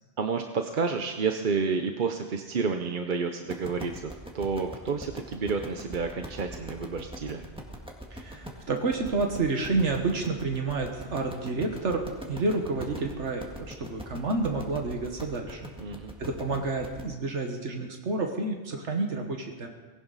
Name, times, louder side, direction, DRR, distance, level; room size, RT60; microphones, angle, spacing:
voice 1, 0.2-7.4 15.8-16.1, right 5 dB, 50° right, 5 dB, 0.9 m, -30 dB
sound 1, 3.5-17.1, equal, 5° right, 1.8 m, -42 dB
voice 2, 8.1-15.7 16.2-19.7, right 3 dB, 85° right, 3 dB, 1.7 m, -29 dB
19.0 x 17.0 x 4.1 m, 1.3 s
omnidirectional pair, 1.2 m